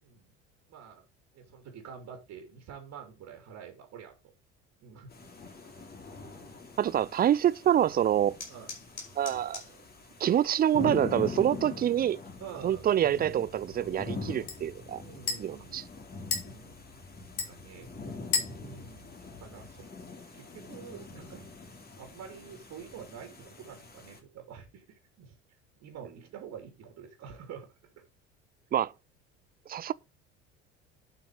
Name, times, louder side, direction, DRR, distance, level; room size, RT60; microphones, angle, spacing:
voice 1, 0.7-1.0 1.3-4.1 4.8-5.1 6.3-6.6 8.5-8.7 12.4-12.8 15.0-15.8 16.4-16.8 17.5-18.2 18.5-19.9 20.3-21.5 22.0-25.3 25.8-27.7 28.0-28.1, right 7 dB, 50° right, 3.0 m, -47 dB
sound 1, 5.1-24.2, left 3 dB, 25° left, 3.1 m, -43 dB
voice 2, 6.8-8.4 9.2-9.6 10.2-12.2 12.6-15.0 15.4-15.8 28.7-28.9 29.7-29.9, right 10 dB, 25° right, 0.5 m, -26 dB
sound 2, 7.4-18.5, left 4 dB, 70° left, 5.9 m, -53 dB
sound 3, 12.2-20.0, left 5 dB, 50° left, 4.2 m, -39 dB
11.0 x 6.0 x 5.1 m
figure-of-eight pair, 65°, 35 cm